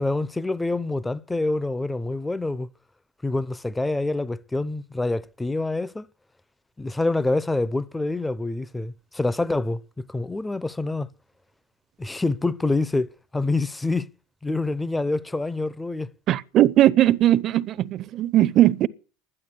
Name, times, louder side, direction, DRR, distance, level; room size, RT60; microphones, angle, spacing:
voice 1, 0.0-2.7 3.2-6.1 6.8-11.1 12.0-14.1 14.4-16.1, left 2 dB, 10° left, 0.6 m, -26 dB
voice 2, 16.3-18.9, right 13 dB, 45° right, 0.7 m, -19 dB
12.0 x 11.0 x 8.3 m
supercardioid pair, 120°, 0 cm